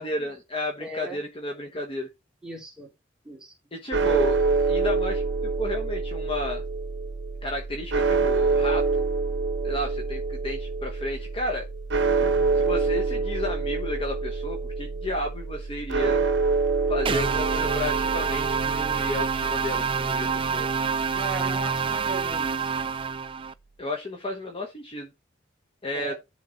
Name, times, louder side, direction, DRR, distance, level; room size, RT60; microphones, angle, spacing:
voice 1, 0.0-2.1 3.7-5.2 5.6-6.6 7.4-9.0 9.6-11.7 12.5-16.2 16.9-20.7 23.8-25.1 25.8-26.2, left 1 dB, 30° left, 1.1 m, -32 dB
voice 2, 0.8-1.2 2.4-2.9 3.2-3.5 12.2-12.6 21.1-22.9 25.9-26.2, right 2 dB, 5° right, 2.5 m, -38 dB
sound 1, 3.9-22.2, right 4 dB, 65° right, 0.9 m, -27 dB
sound 2, 17.1-23.5, right 6 dB, 25° right, 0.4 m, -27 dB
10.5 x 3.8 x 3.9 m
head